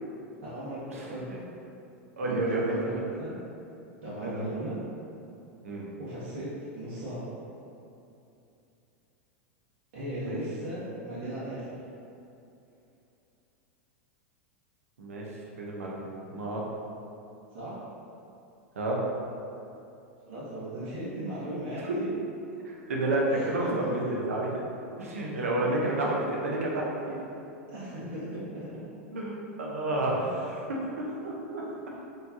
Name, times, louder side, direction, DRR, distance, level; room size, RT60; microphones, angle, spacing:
voice 1, 0.4-1.3 2.2-3.3 4.0-4.8 6.0-7.3 9.9-11.7 17.5-17.8 20.2-22.0 23.3-23.8 25.6-26.1 27.7-28.8, right 1 dB, 65° right, -11 dB, 1.3 m, -37 dB
voice 2, 2.2-3.0 4.2-4.4 5.6-5.8 10.2-10.4 15.0-15.2 15.6-16.0 16.3-16.6 18.8-19.0 21.8-21.9 22.6-24.5 25.0-27.2 29.1-30.2 30.7-31.7, right 1 dB, 85° right, -3 dB, 0.8 m, -30 dB
4.6 x 3.1 x 2.8 m, 2.7 s
hypercardioid pair, 110°, 7 cm